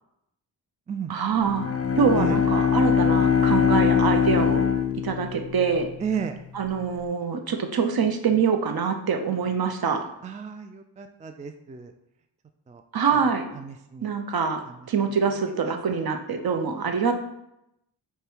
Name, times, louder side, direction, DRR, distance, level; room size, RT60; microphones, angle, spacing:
voice 1, 1.1-4.6 5.0-5.9 6.5-10.0 12.9-13.5 14.0-17.1, right 6 dB, 50° right, 6 dB, 0.8 m, -25 dB
Bowed string instrument, 1.4-5.8, left 7 dB, 30° left, 0.7 m, -22 dB
voice 2, 6.0-6.4 10.2-11.9 12.7-12.8 13.6-14.1 14.7-14.8 15.6-15.8, right 7 dB, 20° right, 7 dB, 0.3 m, -33 dB
4.9 x 2.2 x 4.6 m, 0.83 s
cardioid pair, 45°, 45 cm